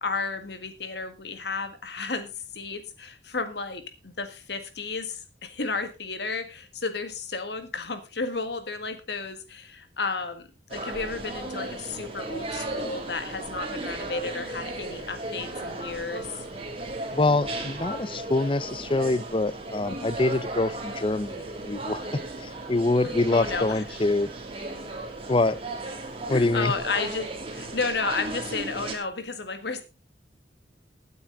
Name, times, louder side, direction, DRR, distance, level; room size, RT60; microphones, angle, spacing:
voice 1, 0.0-16.4 23.3-23.8 26.3-29.8, left 4 dB, 65° left, 1.7 m, -32 dB
sound 1, 10.7-28.9, right 2 dB, 30° right, 2.7 m, -35 dB
voice 2, 17.1-22.0 22.7-24.3 25.3-25.6 26.3-26.7, left 2 dB, 30° left, 0.6 m, -25 dB
16.5 x 9.4 x 3.9 m
head